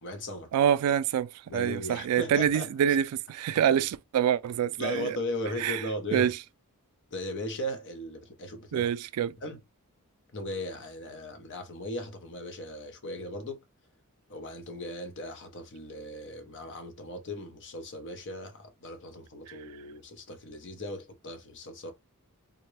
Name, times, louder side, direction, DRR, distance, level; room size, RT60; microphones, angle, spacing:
voice 1, 0.0-0.5 1.5-3.0 3.7-3.8 4.8-6.3 7.1-8.9 9.4-9.6 10.3-13.6 14.3-21.9, left 1 dB, 55° left, 0.7 m, -37 dB
voice 2, 0.5-5.2 5.6-5.8 6.1-6.3 8.7-9.3, right 9 dB, 80° right, 0.3 m, -26 dB
3.6 x 2.2 x 3.0 m
head